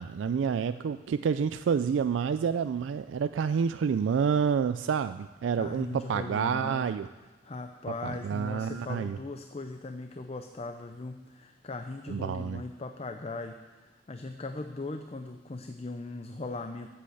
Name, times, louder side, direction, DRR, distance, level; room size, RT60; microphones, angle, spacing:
voice 1, 0.0-7.1 8.0-9.2 12.1-12.6, right 6 dB, 75° right, 11 dB, 0.3 m, -28 dB
voice 2, 5.5-6.9 7.4-16.9, left 3 dB, 35° left, 6 dB, 0.5 m, -39 dB
11.5 x 7.7 x 7.9 m, 1.2 s
head